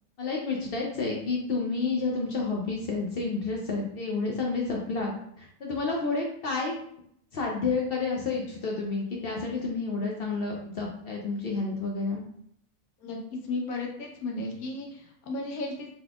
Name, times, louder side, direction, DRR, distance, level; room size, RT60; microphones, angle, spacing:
voice 1, 0.2-6.8 7.3-12.2, left 3 dB, 65° left, -1 dB, 0.6 m, -30 dB
voice 2, 13.4-15.9, left 2 dB, 85° left, 1 dB, 1.2 m, -34 dB
3.6 x 2.9 x 2.3 m, 0.69 s
omnidirectional pair, 1.5 m